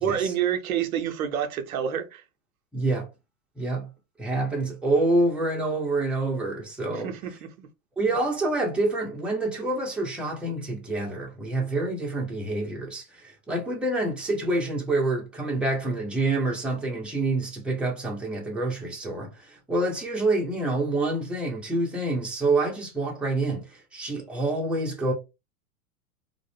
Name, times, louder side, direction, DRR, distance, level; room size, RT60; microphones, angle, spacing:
voice 1, 0.0-2.2 6.9-7.7, right 9 dB, 80° right, 0.6 m, -28 dB
voice 2, 2.7-3.1 3.6-3.9 4.2-7.1 8.0-25.1, right 2 dB, 5° right, 0.7 m, -27 dB
2.5 x 2.0 x 3.3 m
hypercardioid pair, 105°, 42 cm